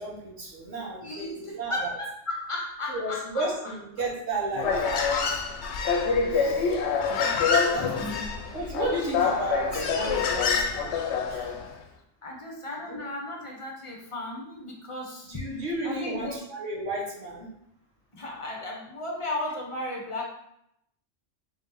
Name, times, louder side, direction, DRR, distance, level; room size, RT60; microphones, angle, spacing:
voice 1, 0.0-1.9 2.9-5.4 6.3-6.7 7.6-8.2 8.5-11.5 12.9-13.0 15.2-17.5, right 2 dB, 80° right, -4 dB, 1.5 m, -33 dB
voice 2, 1.0-3.5 4.5-4.6 6.9-7.0 7.3-7.5 7.8-8.5 12.2-15.3 15.8-16.4 18.1-20.2, left 2 dB, 35° left, -1 dB, 0.6 m, -35 dB
Human voice, 4.6-11.7, left 5 dB, 70° left, 0.8 m, -26 dB
3.6 x 2.7 x 3.7 m, 0.76 s
omnidirectional pair, 1.2 m